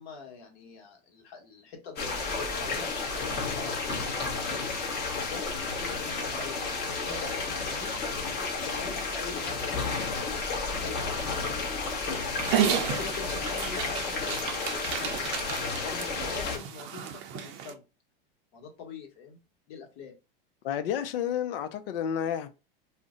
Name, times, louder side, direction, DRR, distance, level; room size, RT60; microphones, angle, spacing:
voice 1, 0.0-4.3 5.1-8.0 8.6-12.0 12.5-15.4 15.7-17.8 18.5-19.4 19.7-20.1, left 6 dB, 55° left, 1.2 m, -45 dB
sound 1, 2.0-16.6, left 4 dB, 35° left, 0.9 m, -32 dB
Dog, 12.4-17.7, right 9 dB, 45° right, 0.6 m, -32 dB
voice 2, 20.6-22.5, left 9 dB, 70° left, 0.6 m, -30 dB
2.5 x 2.1 x 3.6 m
supercardioid pair, 125°, 29 cm